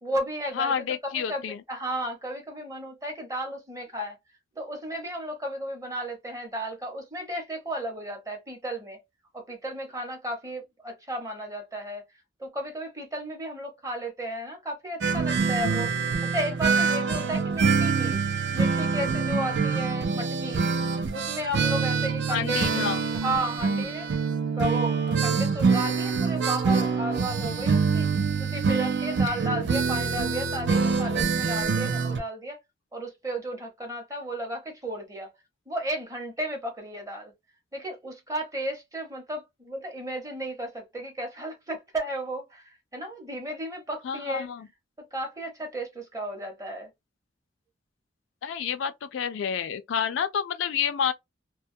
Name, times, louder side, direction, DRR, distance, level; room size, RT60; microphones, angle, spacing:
voice 1, 0.0-0.7 1.0-4.2 4.6-9.0 9.3-12.0 12.4-15.9 16.2-18.2 18.5-20.6 21.1-22.9 23.1-24.1 24.5-28.1 28.4-32.6 32.9-35.3 35.7-37.3 37.7-44.5 45.1-46.9, right 1 dB, 20° right, 0.8 m, -34 dB
voice 2, 0.6-1.6 22.3-23.0 44.0-44.7 48.4-51.1, left 7 dB, 75° left, 0.3 m, -29 dB
sound 1, 15.0-32.2, right 5 dB, 65° right, 0.4 m, -25 dB
2.2 x 2.1 x 2.6 m
head